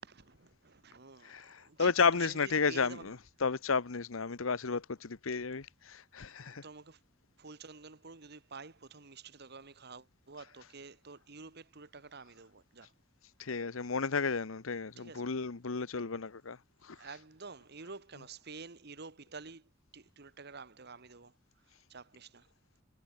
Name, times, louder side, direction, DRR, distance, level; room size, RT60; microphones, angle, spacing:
voice 1, 0.0-3.1 6.5-7.0 7.4-12.9 15.0-15.3 16.9-21.3 21.7-22.5, right 4 dB, 55° right, 1.5 m, -50 dB
voice 2, 1.2-6.7 10.4-10.7 13.4-17.2 18.1-18.3, left 5 dB, 85° left, 1.0 m, -33 dB
head